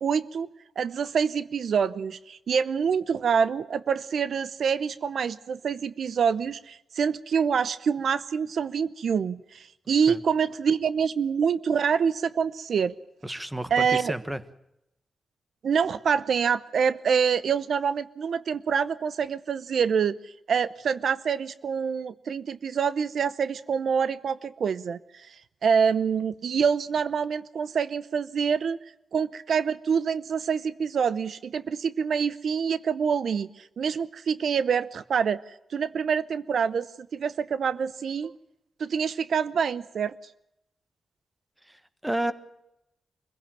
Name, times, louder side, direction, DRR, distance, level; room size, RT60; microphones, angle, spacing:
voice 1, 0.0-0.5 0.8-13.0 13.7-14.1 15.6-25.4 25.6-28.8 29.1-38.3 38.8-40.2, right 6 dB, 70° right, 16 dB, 0.7 m, -26 dB
voice 2, 13.2-14.4 42.0-42.3, right 1 dB, 10° right, 12 dB, 1.4 m, -30 dB
24.5 x 16.0 x 7.4 m, 0.85 s
wide cardioid pair, 120°, 0 cm